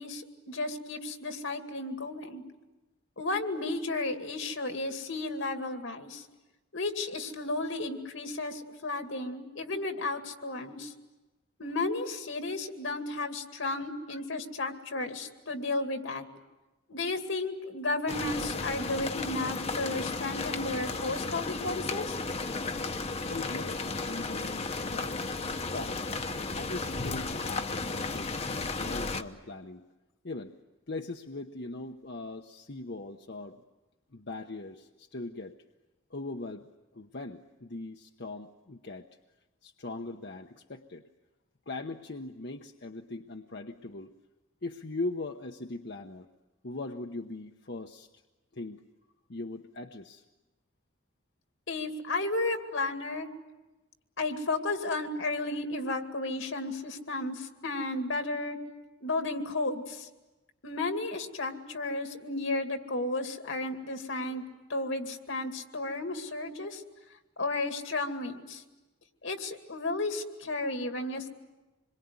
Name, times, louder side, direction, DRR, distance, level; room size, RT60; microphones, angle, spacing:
voice 1, 0.0-2.4 3.2-6.2 6.7-10.9 11.6-16.2 16.9-22.1 51.7-53.3 54.2-58.6 59.0-60.1 60.6-66.8 67.4-68.6 69.2-71.3, left 2 dB, 75° left, 6 dB, 2.4 m, -33 dB
sound 1, 18.1-29.2, left 3 dB, 30° left, 1.0 m, -34 dB
voice 2, 23.2-25.2 25.6-26.0 26.5-29.8 30.2-30.6 30.9-33.6 34.1-35.6 36.1-36.7 36.9-39.1 39.6-41.0 41.7-44.2 44.6-46.3 46.6-48.1 48.5-48.8 49.3-50.2, left 2 dB, 55° left, 4 dB, 1.0 m, -40 dB
26.5 x 22.5 x 9.6 m, 1.1 s
head